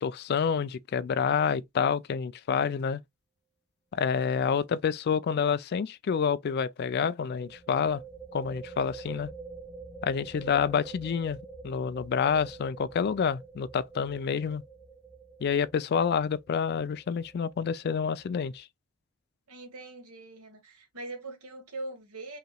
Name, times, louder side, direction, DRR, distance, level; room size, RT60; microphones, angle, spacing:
voice 1, 0.0-3.0 3.9-8.0 8.3-9.3 10.0-11.4 11.6-14.6 15.4-18.7, left 6 dB, 45° left, 0.3 m, -28 dB
sound 1, 4.3-4.4 4.6-4.7 7.2-18.6, right 4 dB, ahead, 1.0 m, -47 dB
voice 2, 19.5-22.4, right 2 dB, 80° right, 1.6 m, -42 dB
5.5 x 3.0 x 2.3 m
head